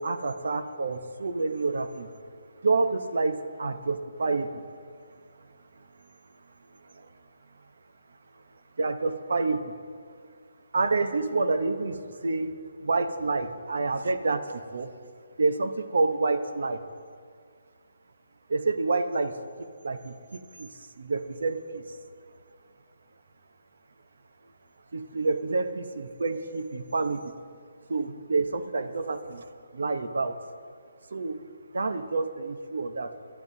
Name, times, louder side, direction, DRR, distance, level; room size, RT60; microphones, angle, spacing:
voice 1, 0.0-2.1 2.6-4.6 6.9-7.1 8.8-9.7 10.7-12.5 12.8-14.9 15.4-16.8 18.5-20.7 21.0-21.8 24.9-27.3 27.9-29.5 29.7-30.4 31.1-31.4 31.7-33.1, right 3 dB, 75° right, 9 dB, 0.9 m, -28 dB
21.5 x 13.0 x 2.7 m, 2.1 s
hypercardioid pair, 165°, 0 cm